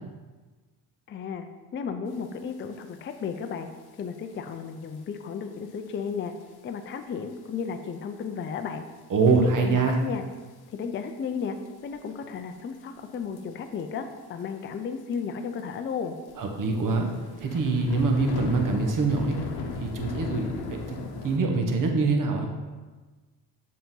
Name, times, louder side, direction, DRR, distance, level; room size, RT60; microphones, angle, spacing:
voice 1, 1.1-1.5 1.7-3.7 4.0-6.3 6.6-8.8 9.3-10.2 10.7-11.6 11.8-16.1, left 6 dB, 25° left, 6 dB, 0.5 m, -34 dB
sound 1, 2.7-2.8 3.1-3.5 4.1-4.3 4.9-5.0 5.7-5.8 6.1-6.2 6.4-6.5 7.6-7.9 8.3-8.4 9.2-9.3 9.9-10.3 10.7-10.8 11.4-12.1 13.1-13.4 13.7-13.8 14.1-14.2 14.4-14.5 15.1-15.2 15.6-15.7 16.3-21.4, left 4 dB, 55° left, 1.0 m, -37 dB
voice 2, 9.1-10.0 16.4-17.1 17.4-19.4 19.8-20.5 21.2-22.5, right 3 dB, 45° right, 3 dB, 1.1 m, -24 dB
6.9 x 4.1 x 3.8 m, 1.3 s
supercardioid pair, 85°, 45 cm